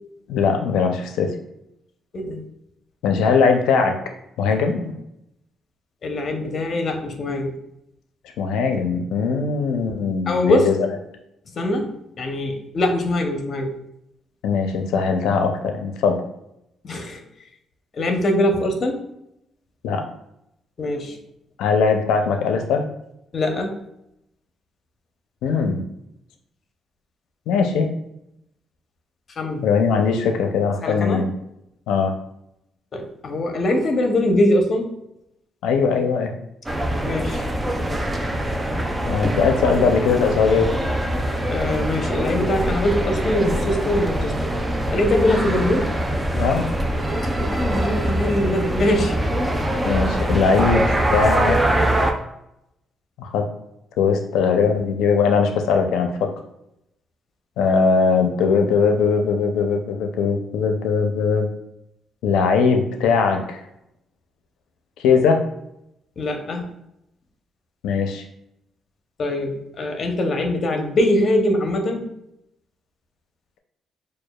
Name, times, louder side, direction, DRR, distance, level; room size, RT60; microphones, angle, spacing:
voice 1, 0.3-1.3 3.0-4.0 4.4-4.9 8.4-10.9 14.4-16.2 19.8-20.1 21.6-22.9 25.4-25.8 27.5-27.9 29.6-31.3 31.9-32.1 35.6-36.3 39.0-40.7 46.3-46.7 49.8-51.6 53.2-53.5 54.0-56.3 57.6-61.5 62.2-63.6 65.0-65.4 67.8-68.2, left 5 dB, 90° left, 5 dB, 0.4 m, -20 dB
voice 2, 2.1-2.4 6.0-7.6 10.3-10.7 11.6-13.8 16.8-17.2 17.9-19.0 20.8-21.2 23.3-23.8 29.4-29.6 30.8-31.2 32.9-34.9 37.0-37.4 41.5-44.5 44.9-45.9 47.4-49.1 66.2-66.7 69.2-72.1, left 1 dB, 50° left, 4 dB, 0.7 m, -22 dB
sound 1, 36.7-52.1, right 1 dB, 15° right, 0.4 m, -23 dB
6.4 x 2.3 x 2.3 m, 0.82 s
cardioid pair, 90°, 0 cm